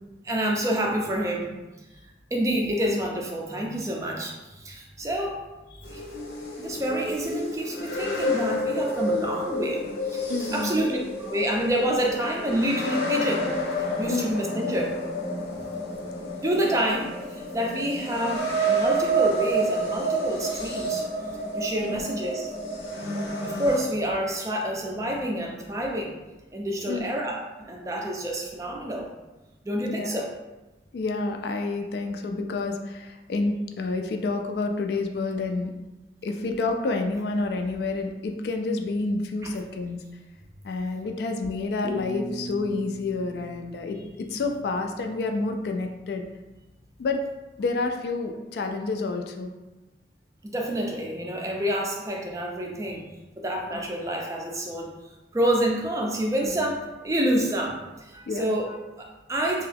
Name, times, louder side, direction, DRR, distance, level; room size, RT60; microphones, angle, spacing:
voice 1, 0.2-1.5 2.3-5.4 5.9-6.0 6.6-15.0 16.4-21.0 21.5-22.5 23.4-26.1 26.5-29.1 29.6-30.2 50.5-53.0 53.4-54.9 55.3-59.7, right 1 dB, 20° right, 0 dB, 0.3 m, -28 dB
sound 1, 5.8-23.8, right 1 dB, 85° left, 0.7 m, -29 dB
voice 2, 10.3-10.7 14.1-14.3 21.8-22.1 26.8-27.1 29.8-30.2 30.9-35.7 36.2-40.0 40.6-46.2 47.0-47.2 47.6-49.5 56.4-56.6 58.3-58.4, left 3 dB, 65° left, 5 dB, 0.3 m, -29 dB
sound 2, 41.8-44.8, right 1 dB, 30° left, 0.7 m, -39 dB
2.7 x 2.2 x 3.3 m, 1.1 s
head